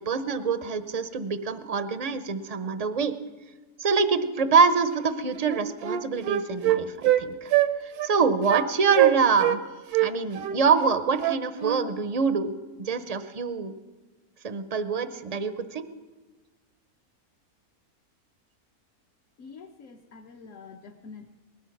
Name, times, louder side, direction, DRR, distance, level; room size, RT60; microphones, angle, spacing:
voice 1, 0.0-3.1 3.8-7.5 7.8-9.6 10.0-12.5 12.8-13.7 14.4-15.9, right 5 dB, 45° right, 11 dB, 0.5 m, -25 dB
Wind instrument woodwind instrument, 5.0-5.2 5.5-7.2 7.5-7.7 8.0-8.1 8.5-8.7 8.9-9.6 9.9-11.8, right 13 dB, 80° right, 1.2 m, -23 dB
voice 2, 19.4-21.3, left 5 dB, 60° left, 2 dB, 1.2 m, -46 dB
19.0 x 12.5 x 5.8 m, 1.3 s
omnidirectional pair, 1.6 m